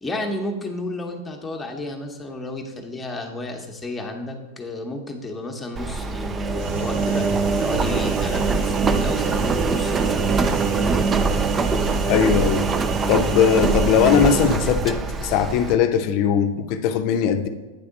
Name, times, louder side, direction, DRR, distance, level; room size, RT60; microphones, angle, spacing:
voice 1, 0.0-7.3 7.6-10.4, left 2 dB, 10° left, 2 dB, 0.9 m, -32 dB
Engine, 5.8-15.8, right 4 dB, 20° right, 0.3 m, -23 dB
sound 1, 6.6-14.6, right 2 dB, 70° right, 1.2 m, -33 dB
voice 2, 12.1-12.7 13.1-17.5, left 8 dB, 50° left, 8 dB, 0.6 m, -20 dB
9.2 x 3.5 x 3.7 m, 1.2 s
hypercardioid pair, 110°, 0 cm